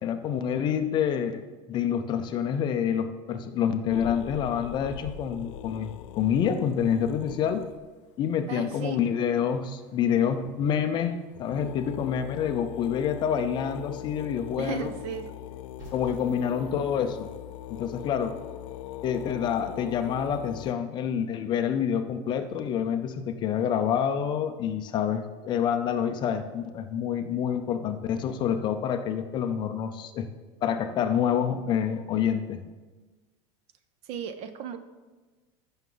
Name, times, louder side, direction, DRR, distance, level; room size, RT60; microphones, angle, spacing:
voice 1, 0.0-7.6 8.2-14.9 15.9-17.3 17.7-18.3 19.0-30.3 30.6-32.6, left 8 dB, 30° left, 8 dB, 0.5 m, -27 dB
sound 1, 3.9-7.9 10.6-10.7 11.1-11.2 11.3-20.7, left 12 dB, 80° left, 0.5 m, -41 dB
voice 2, 8.5-9.0 14.6-15.3 34.1-34.8, right 8 dB, 40° right, 10 dB, 0.6 m, -35 dB
sound 2, 15.8-17.8, left 1 dB, 25° right, 3.1 m, -50 dB
15.0 x 6.1 x 3.9 m, 1.3 s
supercardioid pair, 170°, 16 cm